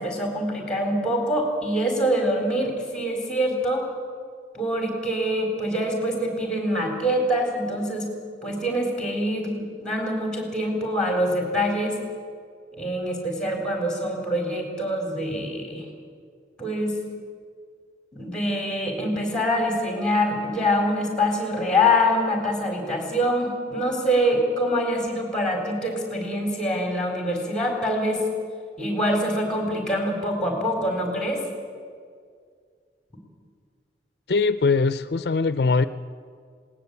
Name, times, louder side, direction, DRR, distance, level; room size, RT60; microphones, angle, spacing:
voice 1, 0.0-3.9 4.5-8.1 8.4-12.0 12.8-15.8 16.6-16.9 18.1-28.2 28.8-31.4, equal, 5° left, 2 dB, 4.1 m, -25 dB
voice 2, 34.3-35.8, left 4 dB, 65° left, 13 dB, 0.5 m, -21 dB
20.0 x 18.5 x 8.3 m, 2.1 s
head